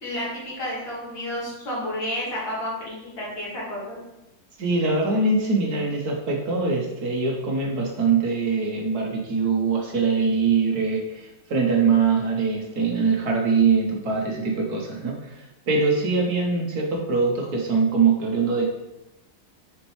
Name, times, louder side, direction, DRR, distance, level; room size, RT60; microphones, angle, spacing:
voice 1, 0.0-4.0, left 1 dB, 80° left, -7 dB, 3.1 m, -31 dB
voice 2, 4.6-18.7, right 4 dB, 60° right, 0 dB, 1.4 m, -23 dB
6.5 x 5.3 x 3.2 m, 0.93 s
omnidirectional pair, 2.1 m